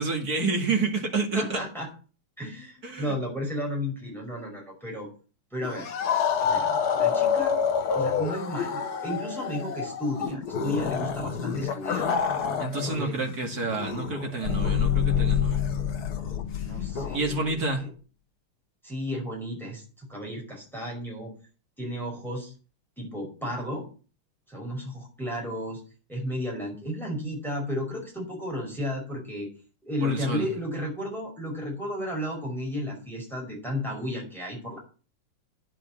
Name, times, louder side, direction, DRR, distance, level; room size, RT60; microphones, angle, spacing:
voice 1, 0.0-1.6 2.8-3.1 12.6-15.7 17.1-17.8 30.0-30.5, right 3 dB, 45° right, 2.6 m, -29 dB
voice 2, 1.3-1.9 2.4-5.1 5.5-5.9 6.4-7.6 7.9-12.1 12.8-13.2 16.6-17.9 18.8-21.3 21.8-22.5 23.0-23.9 24.5-25.8 26.1-29.5 29.8-34.8, left 1 dB, ahead, 5.1 m, -33 dB
sound 1, 5.6-13.0 13.3-17.2, left 6 dB, 50° left, 1.5 m, -29 dB
sound 2, 14.4-17.6, left 8 dB, 80° left, 1.8 m, -27 dB
10.0 x 6.2 x 8.6 m
omnidirectional pair, 2.4 m